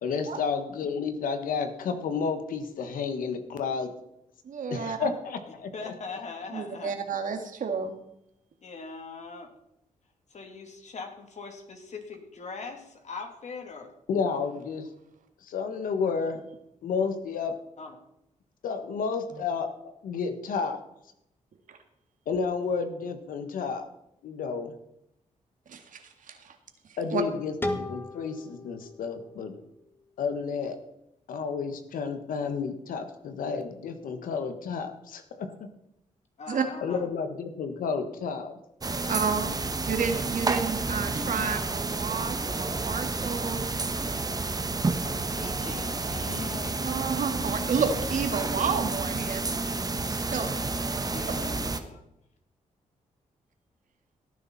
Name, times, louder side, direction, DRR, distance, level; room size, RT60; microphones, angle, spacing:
voice 1, 0.0-3.9 4.7-5.9 14.1-14.9 15.4-16.4 16.8-17.5 18.6-20.8 22.3-23.8 24.2-24.7 27.0-29.6 30.2-30.8 31.3-35.7 36.8-38.5, left 5 dB, 90° left, 8 dB, 1.5 m, -31 dB
voice 2, 4.4-5.1 6.5-7.9 21.7-21.8 25.7-26.6 26.9-27.2 36.5-36.7 39.1-39.5 39.9-43.8 46.8-49.8 50.1-50.6, right 6 dB, 70° right, 6 dB, 2.1 m, -31 dB
voice 3, 5.7-7.0 8.6-9.5 10.3-13.9 17.8-18.0 36.4-37.1 38.9-39.5 45.0-47.1 51.1-52.0, left 4 dB, 55° left, 4 dB, 2.8 m, -41 dB
sound 1, 27.6-30.5, left 1 dB, 15° left, 1.7 m, -37 dB
sound 2, 38.8-51.8, right 3 dB, 25° right, 1.3 m, -30 dB
17.5 x 9.8 x 4.2 m, 0.80 s
cardioid pair, 85°, 14 cm